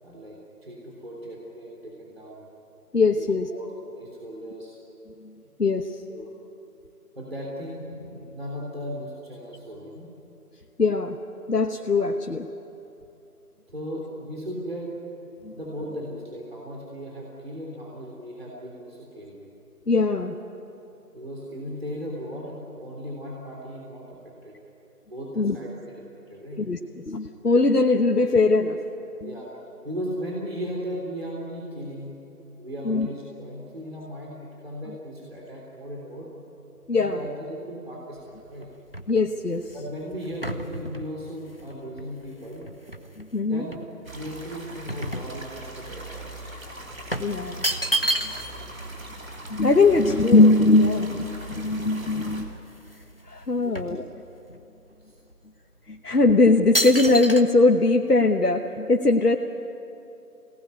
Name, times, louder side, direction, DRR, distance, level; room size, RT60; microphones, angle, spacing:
voice 1, 0.0-2.5 3.2-4.8 6.1-6.3 7.2-10.1 13.7-14.9 15.5-19.4 21.1-24.6 25.1-26.6 29.2-29.5 29.8-32.2 32.6-36.3 36.9-38.7 39.7-42.6 43.4-43.8 44.1-46.5 53.5-53.8 55.0-55.2, equal, 40° right, -4 dB, 3.5 m, -37 dB
voice 2, 2.9-3.5 5.6-5.9 10.8-11.2 11.5-12.5 15.4-15.5 19.9-20.4 25.4-25.6 26.6-26.8 27.1-28.8 29.2-29.3 32.8-33.1 36.9-37.2 39.1-39.7 43.2-43.7 47.2-47.6 48.2-48.3 49.5-52.5 53.2-54.0 55.9-59.4, left 3 dB, 80° left, 3 dB, 1.3 m, -20 dB
sound 1, 38.2-43.3 43.7-45.9 46.2-46.4 47.1-48.7 49.0-49.1 49.3-51.4 52.0-52.1 52.3-53.1 53.4-54.6 55.2-55.3 56.0-56.2 56.7-57.4, right 1 dB, 40° left, 0.9 m, -31 dB
sound 2, 44.0-52.5, right 2 dB, 60° right, 3.1 m, -39 dB
24.5 x 18.5 x 9.5 m, 2.9 s
figure-of-eight pair, 175°, 46 cm